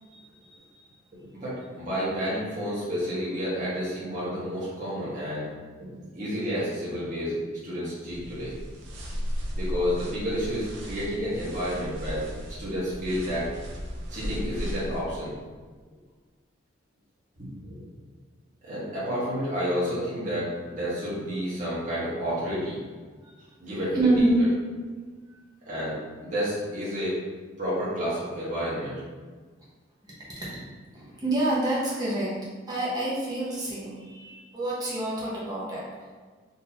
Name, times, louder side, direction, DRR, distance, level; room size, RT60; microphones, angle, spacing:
voice 1, 0.1-0.8 23.9-24.4 30.4-30.5 30.9-32.3 32.7-35.8, right 2 dB, 20° right, -7 dB, 0.8 m, -27 dB
voice 2, 1.3-5.5 6.1-8.5 9.5-12.3 12.6-13.5 14.1-15.3 17.7-17.8 18.6-22.8 23.6-24.5 25.7-26.0 26.2-27.2 27.6-29.0, equal, 35° right, -10 dB, 1.1 m, -30 dB
sound 1, 8.1-15.0, equal, 65° right, 0.6 m, -35 dB
3.9 x 2.7 x 2.8 m, 1.5 s
head